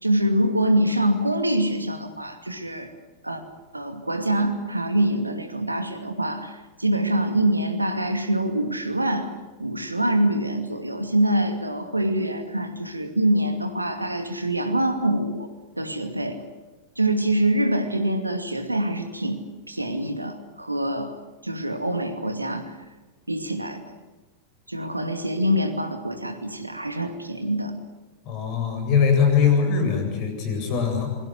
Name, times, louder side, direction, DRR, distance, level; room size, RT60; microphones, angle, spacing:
voice 1, 0.0-2.9 3.2-3.4 3.7-9.3 9.6-15.5 15.8-16.4 17.0-19.4 19.7-21.1 21.4-22.7 23.3-23.8 24.7-27.7, right 1 dB, 85° right, 6 dB, 2.5 m, -25 dB
voice 2, 28.2-31.1, left 6 dB, 40° left, 5 dB, 7.9 m, -21 dB
27.0 x 23.5 x 6.4 m, 1.2 s
figure-of-eight pair, 90°, 0 cm